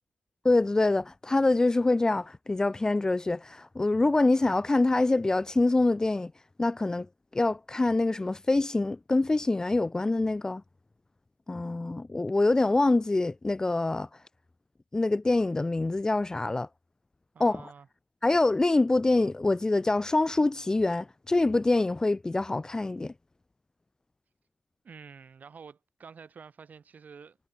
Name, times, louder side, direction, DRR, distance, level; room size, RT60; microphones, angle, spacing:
voice 1, 0.4-6.3 6.6-7.1 7.3-10.6 11.5-14.1 14.9-16.7 17.4-17.7 18.2-23.1, left 2 dB, 15° left, 1.0 m, -25 dB
voice 2, 17.3-17.9 24.8-27.4, right 6 dB, 45° right, 4.4 m, -49 dB
wide cardioid pair, 170°, 4 cm